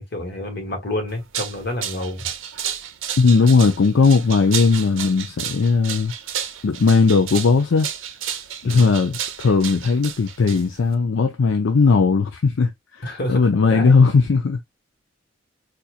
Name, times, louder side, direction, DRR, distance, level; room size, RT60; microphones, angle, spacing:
voice 1, 0.0-2.2 8.6-8.9 13.0-14.0, left 1 dB, 55° left, 1.6 m, -29 dB
sound 1, 1.1-10.9, right 9 dB, 85° right, 0.6 m, -32 dB
voice 2, 3.2-6.1 6.6-7.9 8.6-14.6, left 4 dB, 75° left, 0.5 m, -17 dB
4.2 x 2.5 x 2.4 m
head